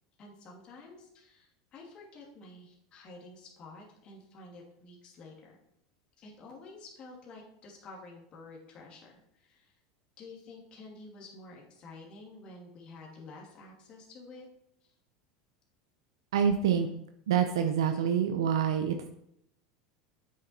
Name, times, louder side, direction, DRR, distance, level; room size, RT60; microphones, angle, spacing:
voice 1, 0.2-5.6 6.2-9.8 10.2-14.5, left 3 dB, 40° left, -2 dB, 2.6 m, -50 dB
voice 2, 16.3-16.9 17.3-19.1, right 8 dB, 90° right, 6 dB, 0.7 m, -26 dB
7.9 x 7.4 x 4.6 m, 0.76 s
supercardioid pair, 110°, 2 cm